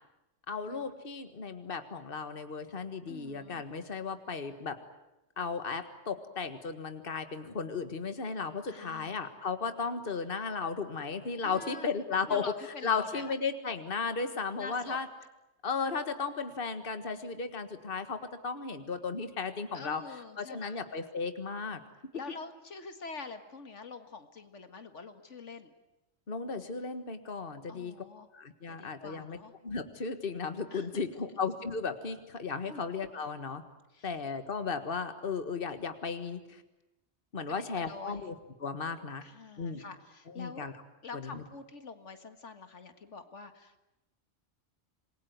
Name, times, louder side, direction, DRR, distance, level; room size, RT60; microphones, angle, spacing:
voice 1, 0.5-4.8 5.4-12.4 12.8-15.1 15.6-20.0 20.4-21.8 26.3-28.0 28.3-29.4 29.6-33.6 34.0-36.6 37.3-38.3 38.6-39.2 39.6-39.8 40.4-40.7 41.1-41.4, left 5 dB, 50° left, 9 dB, 1.8 m, -35 dB
voice 2, 3.1-3.6 8.7-9.1 11.4-11.9 12.3-13.3 14.5-15.0 19.7-20.8 22.1-25.7 27.7-28.3 28.7-29.5 30.7-31.2 32.7-32.9 33.9-34.2 37.5-38.3 39.2-40.7 41.0-43.8, left 4 dB, 85° left, 8 dB, 2.2 m, -46 dB
27.0 x 22.0 x 9.4 m, 0.96 s
omnidirectional pair, 1.2 m